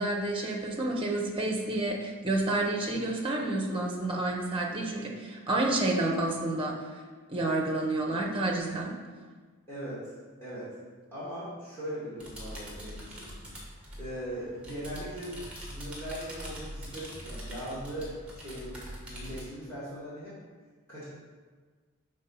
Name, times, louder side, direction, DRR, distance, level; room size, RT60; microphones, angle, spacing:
voice 1, 0.0-6.9 7.3-8.9, right 2 dB, 25° right, 0 dB, 0.8 m, -29 dB
voice 2, 9.7-10.0 10.4-10.7 11.1-13.3 14.0-15.4 15.7-20.4 20.9-21.0, equal, 10° left, -10 dB, 1.7 m, -39 dB
sound 1, 12.2-19.5, equal, 5° right, 1.2 m, -43 dB
5.4 x 3.6 x 5.5 m, 1.5 s
head